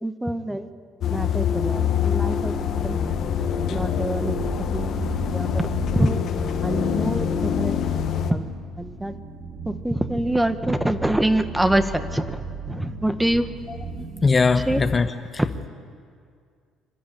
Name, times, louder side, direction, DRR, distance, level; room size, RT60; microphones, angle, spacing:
voice 1, 0.0-0.7 1.1-2.5 2.8-3.0 3.7-4.3 4.7-4.9 5.3-5.7 5.9-6.2 6.6-7.8 8.3-8.5 8.8-9.1 9.7-13.5 14.7-14.8 15.4-15.5, right 1 dB, 5° right, 10 dB, 1.0 m, -25 dB
sound 1, 1.0-8.3, left 8 dB, 60° left, 1.3 m, -25 dB
sound 2, 1.1-15.1, right 3 dB, 45° right, 2.0 m, -36 dB
voice 2, 14.2-15.4, left 4 dB, 25° left, 9 dB, 0.7 m, -21 dB
25.0 x 12.0 x 8.9 m, 2.2 s
cardioid pair, 110°, 0 cm